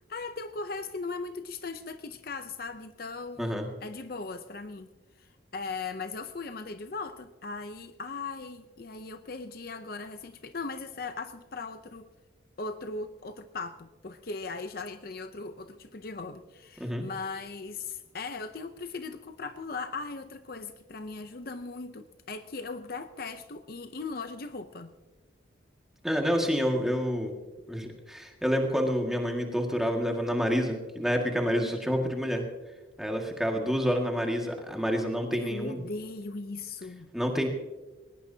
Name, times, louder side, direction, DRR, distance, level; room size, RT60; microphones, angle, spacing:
voice 1, 0.1-4.9 5.2-12.1 12.6-24.9 33.5-33.7 35.3-37.1, left 3 dB, 50° left, 9 dB, 0.6 m, -38 dB
voice 2, 26.0-27.3 27.7-32.5 33.0-35.8 37.1-37.5, equal, ahead, 1 dB, 1.8 m, -28 dB
21.0 x 19.5 x 2.8 m, 1.3 s
head